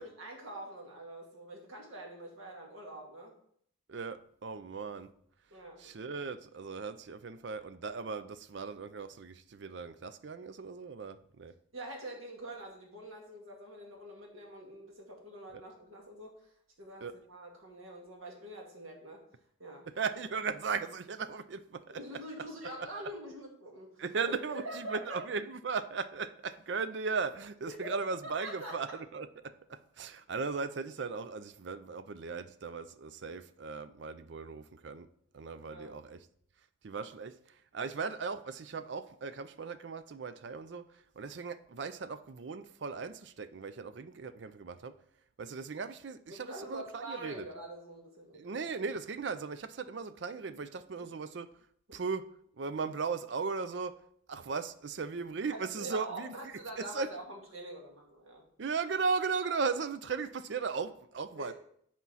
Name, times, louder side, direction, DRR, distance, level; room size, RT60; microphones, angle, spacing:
voice 1, 0.0-3.3 5.5-6.0 11.7-16.5 16.8-19.2 19.6-19.9 21.9-25.2 27.7-28.7 35.7-35.9 46.3-48.7 51.0-51.1 51.9-52.0 55.5-58.5 61.3-61.5, right 1 dB, 90° right, 1 dB, 1.9 m, -45 dB
voice 2, 3.9-5.1 5.8-11.5 15.5-15.6 17.0-17.1 20.0-21.8 24.0-35.1 35.3-36.2 36.8-37.3 37.7-40.9 41.2-44.9 45.4-47.4 48.3-51.5 51.9-52.3 52.6-53.9 54.3-56.3 56.8-57.1 58.6-61.5, right 5 dB, 60° right, 13 dB, 0.5 m, -37 dB
8.4 x 4.4 x 5.6 m, 0.67 s
head